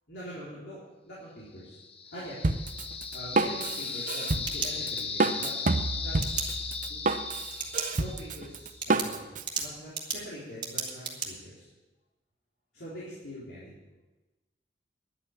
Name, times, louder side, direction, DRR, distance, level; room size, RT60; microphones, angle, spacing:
voice 1, 0.1-1.8 2.1-2.5 3.1-5.5 5.9-6.2 6.9-7.0 7.9-9.2 9.6-11.7 12.7-13.8, equal, 75° left, -9 dB, 4.1 m, -43 dB
sound 1, 1.7-8.6, left 5 dB, 35° left, 1.0 m, -37 dB
Drum kit, 2.4-9.7, right 3 dB, 50° right, 0.7 m, -29 dB
sound 2, 4.4-5.3 6.2-6.5 7.5-7.9 8.3-8.4 8.8-11.3, right 5 dB, 30° right, 2.2 m, -35 dB
11.0 x 8.4 x 9.8 m, 1.1 s
head